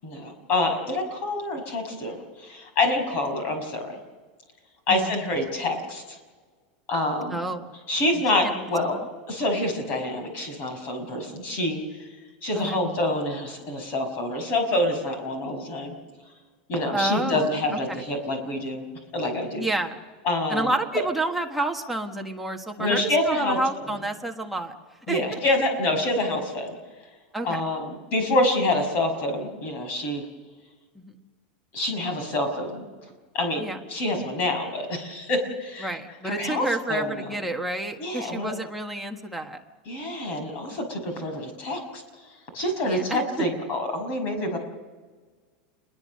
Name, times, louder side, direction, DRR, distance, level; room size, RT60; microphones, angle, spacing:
voice 1, 0.0-4.0 4.9-6.2 6.9-7.4 7.9-8.9 9.3-12.1 12.4-15.9 16.7-18.8 19.1-19.7 20.2-20.7 22.8-23.6 25.1-26.7 27.4-30.2 31.7-32.8 33.3-33.6 33.9-36.0 36.2-37.4 38.0-38.5 39.9-42.0 42.5-44.6, left 1 dB, 35° left, 6 dB, 5.8 m, -27 dB
voice 2, 7.3-7.7 8.4-8.7 12.5-12.8 16.9-17.5 17.9-18.0 19.6-20.0 20.5-24.7 25.1-25.2 27.3-27.6 30.9-31.1 33.6-33.8 35.8-39.6 42.8-43.2, right 2 dB, ahead, 1 dB, 1.4 m, -29 dB
28.5 x 21.5 x 6.6 m, 1.4 s
supercardioid pair, 170°, 5 cm